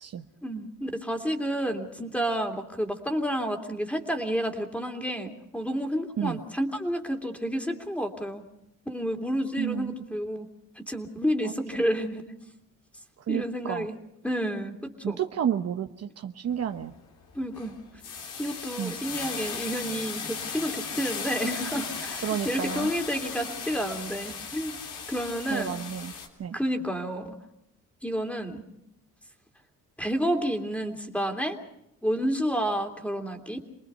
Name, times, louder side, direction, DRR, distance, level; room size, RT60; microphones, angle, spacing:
voice 1, 0.4-8.4 8.9-10.5 10.8-12.3 13.3-14.0 14.2-15.2 17.3-17.7 18.4-24.7 25.1-25.8 26.5-27.2 28.0-28.6 30.0-31.6 32.0-33.6, equal, 5° left, 5 dB, 3.1 m, -30 dB
voice 2, 9.6-9.9 13.3-13.9 15.0-16.9 18.8-18.9 22.2-22.9 25.5-26.1 26.4-26.6, right 9 dB, 55° right, 7 dB, 1.1 m, -30 dB
sound 1, 16.5-16.8 17.2-26.3, left 5 dB, 85° left, 3.4 m, -36 dB
28.5 x 20.0 x 5.7 m, 0.81 s
cardioid pair, 90°, 30 cm